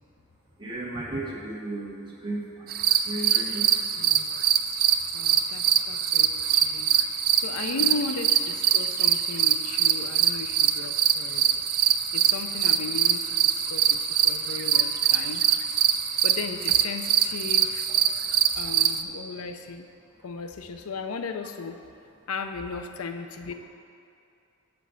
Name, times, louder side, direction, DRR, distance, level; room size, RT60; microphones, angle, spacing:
voice 1, 0.6-2.7 3.0-3.7, right 2 dB, 25° right, -6 dB, 1.7 m, -34 dB
sound 1, 2.7-19.0, right 9 dB, 45° right, 0.3 m, -23 dB
voice 2, 4.0-4.4 4.7-4.8 5.1-11.5 11.8-15.5 16.2-17.9 18.6-19.9 20.2-21.8 22.3-23.5, left 4 dB, 85° left, 7 dB, 0.5 m, -36 dB
8.1 x 5.2 x 7.4 m, 2.5 s
head